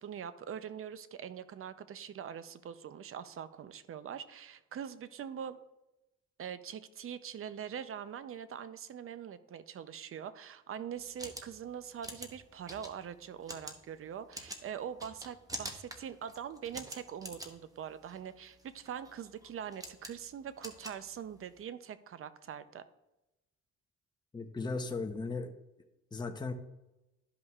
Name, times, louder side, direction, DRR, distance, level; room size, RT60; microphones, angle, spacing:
voice 1, 0.0-5.6 6.4-22.8, right 8 dB, 45° right, 13 dB, 0.6 m, -43 dB
sound 1, 11.0-21.6, right 1 dB, 10° right, 1.0 m, -47 dB
voice 2, 24.3-25.5 26.1-26.5, left 3 dB, 15° left, 5 dB, 0.8 m, -36 dB
12.5 x 5.3 x 2.4 m, 0.97 s
cardioid pair, 90°, 30 cm